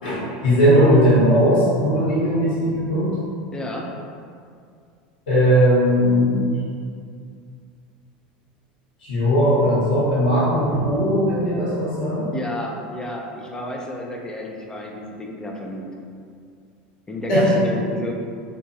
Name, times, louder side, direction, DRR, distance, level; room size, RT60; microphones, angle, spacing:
voice 1, 0.0-3.1 5.3-6.5 9.0-12.2 17.3-17.5, equal, 85° left, -10 dB, 1.1 m, -18 dB
voice 2, 3.5-3.9 12.3-15.9 17.1-18.1, left 1 dB, 15° left, 0 dB, 0.4 m, -31 dB
2.7 x 2.3 x 2.6 m, 2.3 s
supercardioid pair, 105°, 5 cm